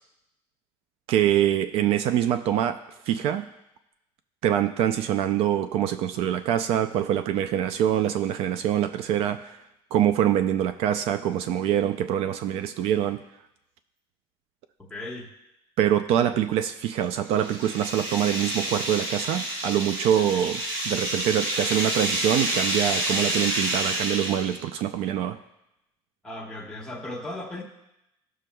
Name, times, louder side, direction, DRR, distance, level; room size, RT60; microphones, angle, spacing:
voice 1, 1.1-2.8 3.1-3.5 4.4-9.6 9.9-13.2 15.8-25.4, right 10 dB, 60° right, 10 dB, 0.4 m, -24 dB
voice 2, 14.8-15.3 16.2-16.4 20.1-20.3 26.2-27.6, left 1 dB, 5° left, -4 dB, 1.3 m, -37 dB
sound 1, 16.9-24.6, right 1 dB, 85° right, 2.3 m, -29 dB
16.0 x 6.3 x 2.3 m, 0.88 s
cardioid pair, 170°, 11 cm